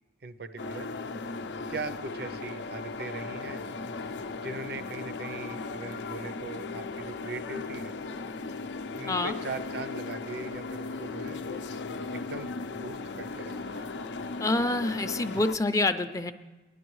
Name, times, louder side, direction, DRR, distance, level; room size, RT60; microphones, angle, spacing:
voice 1, 0.2-0.9 1.7-3.7 4.4-8.0 8.9-11.4 12.1-13.9, right 3 dB, 60° right, 11 dB, 0.6 m, -40 dB
sound 1, 0.6-15.6, left 3 dB, 75° left, 0.5 m, -37 dB
voice 2, 14.4-16.3, left 2 dB, 20° left, 9 dB, 0.5 m, -27 dB
19.0 x 11.0 x 3.1 m, 1.2 s
head